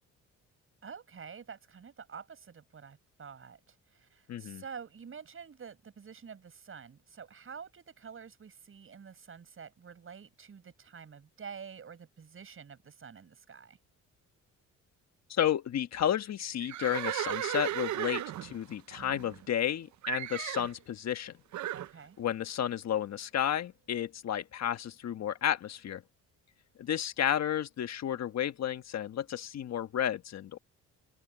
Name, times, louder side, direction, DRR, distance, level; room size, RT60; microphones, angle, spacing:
voice 1, 0.8-13.8 21.7-22.2, right 6 dB, 40° right, 7.6 m, -48 dB
voice 2, 4.3-4.6 15.3-21.3 22.2-26.0 26.8-30.6, left 10 dB, 55° left, 1.4 m, -32 dB
Livestock farm animals working animals, 16.6-19.7 20.0-20.7 21.5-21.9, right 13 dB, 60° right, 0.7 m, -35 dB
cardioid pair, 105°, 32 cm